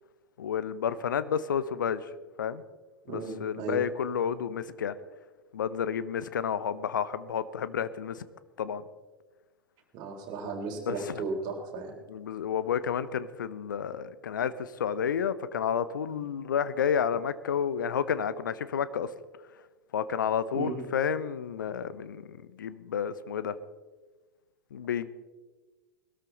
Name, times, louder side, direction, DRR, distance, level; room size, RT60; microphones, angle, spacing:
voice 1, 0.4-2.0 2.4-2.6 3.1-4.9 5.5-8.2 8.6-8.8 10.9-11.0 12.1-19.1 19.9-23.6 24.7-25.1, left 8 dB, 65° left, 15 dB, 0.8 m, -30 dB
voice 2, 3.1-3.8 9.9-12.0 16.1-16.2 20.5-20.8, right 4 dB, 40° right, 2 dB, 3.6 m, -35 dB
20.5 x 13.0 x 4.0 m, 1.3 s
figure-of-eight pair, 95°, 11 cm